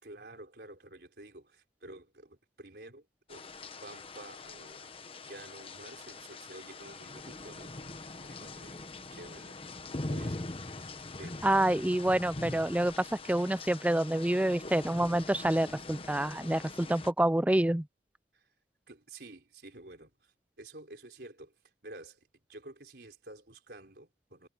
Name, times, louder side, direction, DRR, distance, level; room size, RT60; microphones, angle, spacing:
voice 1, 0.0-4.9 5.3-10.5 11.2-11.9 18.3-18.5 18.9-21.5 21.8-24.5, right 2 dB, 60° right, 4.7 m, -51 dB
sound 1, 3.3-17.1, left 2 dB, 30° left, 1.2 m, -43 dB
voice 2, 11.4-17.9, right 1 dB, 10° right, 0.4 m, -27 dB
head